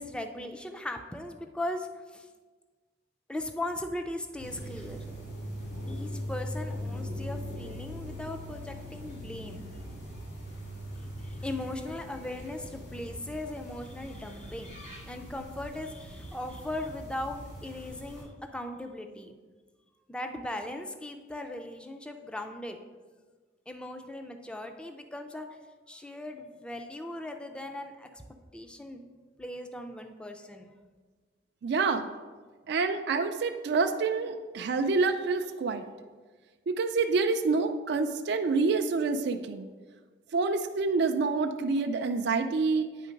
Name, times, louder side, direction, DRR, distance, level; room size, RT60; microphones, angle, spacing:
voice 1, 0.0-2.3 3.3-5.0 5.9-9.7 11.2-19.4 20.1-22.8 23.7-25.5 25.9-28.2 28.5-29.0 29.4-30.7, left 1 dB, 5° left, 5 dB, 0.4 m, -38 dB
sound 1, 4.4-18.2, equal, 65° left, 2.4 m, -41 dB
voice 2, 31.6-32.1 32.7-35.8 36.7-39.7 40.3-42.9, right 4 dB, 65° right, 6 dB, 0.4 m, -27 dB
9.1 x 3.7 x 5.1 m, 1.4 s
head